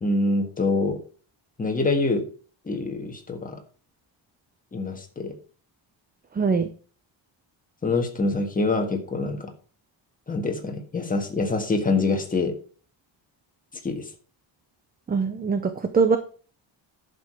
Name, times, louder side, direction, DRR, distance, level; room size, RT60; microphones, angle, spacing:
voice 1, 0.0-1.0 1.6-2.2 2.7-3.6 4.7-5.3 7.8-9.5 10.3-12.5 13.8-14.1, left 3 dB, 15° left, 3 dB, 1.6 m, -25 dB
voice 2, 6.4-6.7 15.1-16.2, right 5 dB, 20° right, 9 dB, 0.6 m, -22 dB
10.5 x 6.9 x 4.5 m, 0.40 s
cardioid pair, 175°, 48 cm